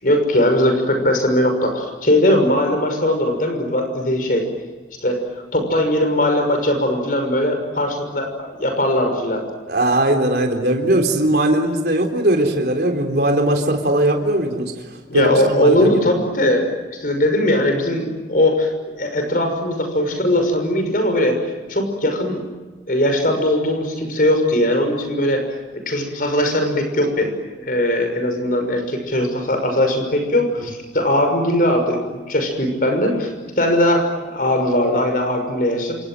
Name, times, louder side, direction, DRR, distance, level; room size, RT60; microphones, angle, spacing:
voice 1, 0.0-4.4 5.0-5.2 5.5-9.4 15.1-16.7 17.0-18.7 19.0-21.4 21.7-22.5 22.9-25.4 25.7-32.0 32.3-36.0, left 1 dB, 50° left, 6 dB, 6.1 m, -19 dB
voice 2, 9.7-14.7 15.1-15.9, right 1 dB, 60° right, 3 dB, 3.8 m, -19 dB
28.5 x 27.0 x 7.8 m, 1.3 s
head